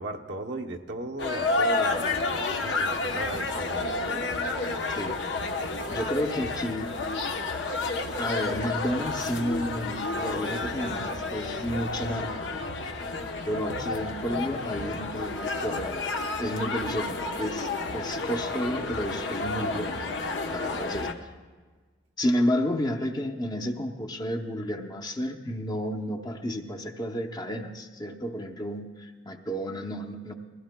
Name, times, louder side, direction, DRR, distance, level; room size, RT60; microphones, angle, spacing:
voice 1, 0.0-4.2, right 2 dB, 70° right, 2 dB, 0.8 m, -36 dB
sound 1, 1.2-21.1, left 3 dB, 85° left, 0.9 m, -30 dB
voice 2, 4.9-5.2 5.9-6.9 8.2-12.5 13.5-16.1 16.4-20.1 20.5-21.3 22.2-30.3, equal, 25° left, 3 dB, 0.7 m, -31 dB
20.5 x 16.0 x 2.2 m, 1.4 s
head